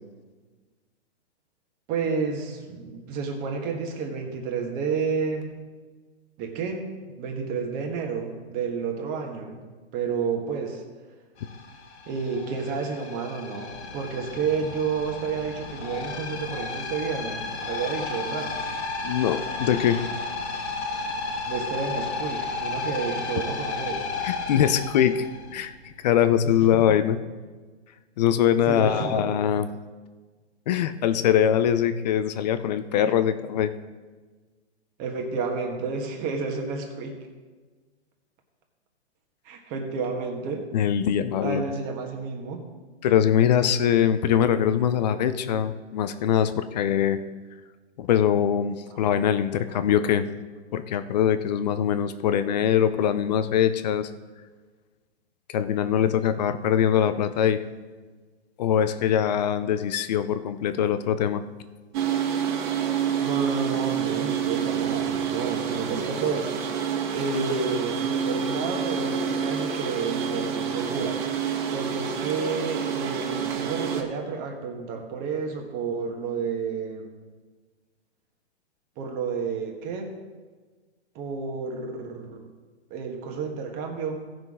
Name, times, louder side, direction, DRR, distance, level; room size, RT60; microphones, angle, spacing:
voice 1, 1.9-5.5 6.4-6.9 7.2-9.6 9.9-10.8 12.1-18.6 21.5-24.1 26.4-26.8 28.7-29.2 35.0-37.1 39.4-40.7 41.4-42.7 48.9-49.0 63.2-66.5 67.1-71.2 71.7-77.1 79.0-80.2 81.1-82.4 82.9-84.3, right 5 dB, 25° right, 2 dB, 1.5 m, -30 dB
sound 1, 11.4-25.9, left 3 dB, 75° left, 1.8 m, -33 dB
voice 2, 19.0-20.0 24.2-25.3 25.5-27.2 28.2-29.7 30.7-33.7 40.7-41.6 43.0-47.2 48.0-50.3 50.7-54.1 55.5-57.6 58.6-61.4, left 9 dB, 40° left, 12 dB, 0.6 m, -22 dB
sound 2, 61.9-74.0, right 7 dB, 45° right, 1.7 m, -28 dB
17.0 x 6.0 x 3.7 m, 1.4 s
hypercardioid pair, 150°, 34 cm